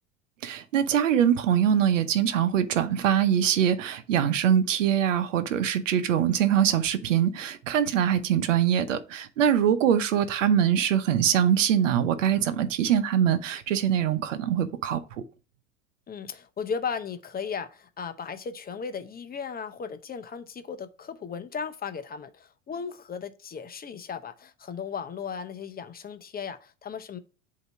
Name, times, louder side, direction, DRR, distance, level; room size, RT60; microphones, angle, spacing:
voice 1, 0.4-15.0, right 9 dB, 80° right, 0.8 m, -23 dB
voice 2, 16.1-27.2, left 6 dB, 25° left, 0.8 m, -36 dB
7.9 x 2.9 x 4.6 m
hypercardioid pair, 80°, 37 cm